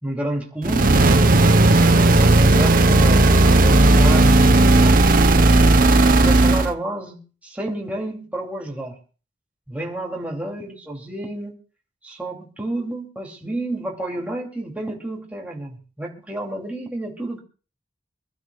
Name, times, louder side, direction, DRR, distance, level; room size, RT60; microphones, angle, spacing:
voice 1, 0.0-1.4 2.1-9.0 9.7-11.5 12.0-17.4, right 1 dB, 10° right, -2 dB, 2.8 m, -30 dB
sound 1, 0.6-6.7, right 2 dB, 50° right, 0.9 m, -14 dB
25.5 x 12.5 x 2.4 m, 0.37 s
head